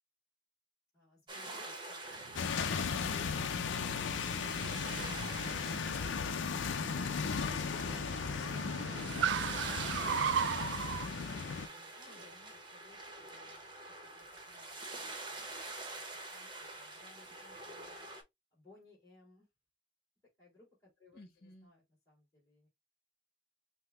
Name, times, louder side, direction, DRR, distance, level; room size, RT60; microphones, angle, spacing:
voice 1, 0.9-2.2 11.9-13.0 13.2-15.5 15.8-16.0 16.3-18.1 18.5-19.5 20.4-22.7, left 2 dB, 15° left, 2.6 m, -62 dB
sound 1, 1.3-18.2, right 2 dB, 25° right, 0.9 m, -46 dB
Car, 2.2-11.1, right 8 dB, 75° right, 0.3 m, -39 dB
sound 2, 2.3-11.7, left 6 dB, 90° left, 0.5 m, -36 dB
voice 2, 9.3-12.5 21.1-21.7, left 2 dB, 50° left, 1.1 m, -59 dB
5.6 x 2.1 x 3.1 m
head